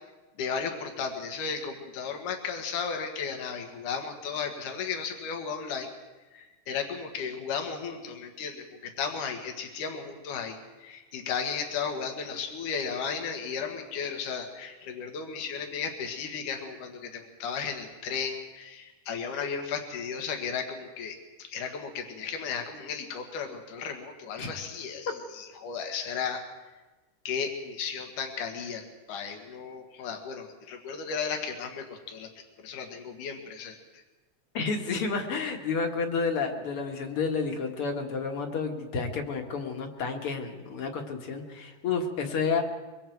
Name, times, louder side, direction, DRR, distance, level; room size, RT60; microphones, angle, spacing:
voice 1, 0.4-5.9 6.3-26.4 27.2-28.8 29.1-32.3 32.6-34.0, left 6 dB, 75° left, 4 dB, 3.2 m, -35 dB
voice 2, 34.5-42.6, left 5 dB, 50° left, 4 dB, 2.2 m, -30 dB
24.0 x 23.5 x 4.6 m, 1.2 s
omnidirectional pair, 3.7 m